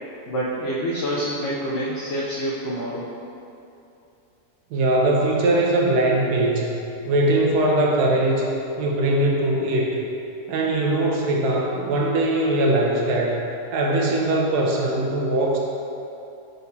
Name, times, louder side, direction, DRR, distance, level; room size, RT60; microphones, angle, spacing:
voice 1, 0.3-3.1, equal, 75° left, -6 dB, 0.6 m, -27 dB
voice 2, 4.7-6.8 7.1-8.5 8.8-10.0 10.5-13.4 13.7-15.6, right 1 dB, 80° right, -2 dB, 1.1 m, -21 dB
4.2 x 4.0 x 2.7 m, 2.8 s
omnidirectional pair, 1.7 m